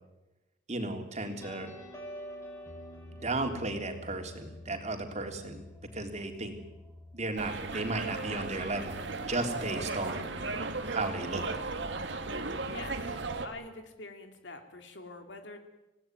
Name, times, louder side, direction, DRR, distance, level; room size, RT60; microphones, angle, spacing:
voice 1, 0.7-1.7 3.2-5.7 5.9-6.5 7.1-10.3 10.9-11.4, right 2 dB, 40° right, 4 dB, 3.5 m, -34 dB
sound 1, 1.2-8.3, left 1 dB, 15° left, 5.2 m, -48 dB
sound 2, 7.4-13.5, right 3 dB, 70° right, 2.3 m, -36 dB
voice 2, 12.6-15.6, left 2 dB, 75° left, 5 dB, 2.9 m, -45 dB
27.0 x 18.0 x 9.4 m, 1.0 s
head